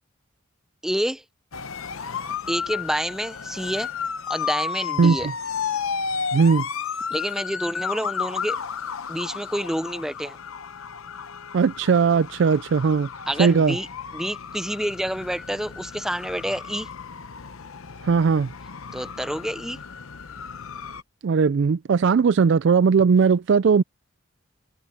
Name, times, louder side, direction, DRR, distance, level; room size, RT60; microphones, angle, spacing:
voice 1, 0.8-1.2 2.5-3.9 4.3-5.3 7.1-8.6 9.1-10.4 13.3-13.9 14.1-16.9 18.9-19.8, equal, ahead, 0.6 m, -28 dB
sound 1, 1.5-21.0, left 6 dB, 85° left, 0.9 m, -33 dB
voice 2, 5.0-5.3 6.3-6.7 11.5-13.1 13.4-13.8 18.0-18.5 21.2-23.8, right 5 dB, 60° right, 0.4 m, -18 dB
head